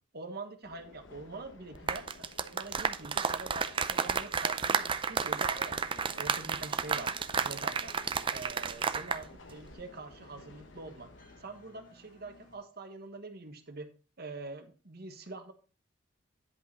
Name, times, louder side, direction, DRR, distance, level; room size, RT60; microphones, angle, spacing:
voice 1, 0.1-7.1 7.4-7.9 8.3-11.1 11.4-13.9 14.2-15.5, right 3 dB, 55° right, 6 dB, 1.4 m, -44 dB
sound 1, 0.6-11.4, left 2 dB, 75° left, 1.0 m, -54 dB
sound 2, 1.7-9.2 9.5-9.7, right 5 dB, 25° right, 0.5 m, -32 dB
sound 3, 5.5-12.6, left 1 dB, 40° left, 3.7 m, -61 dB
10.5 x 5.6 x 4.2 m, 0.36 s
head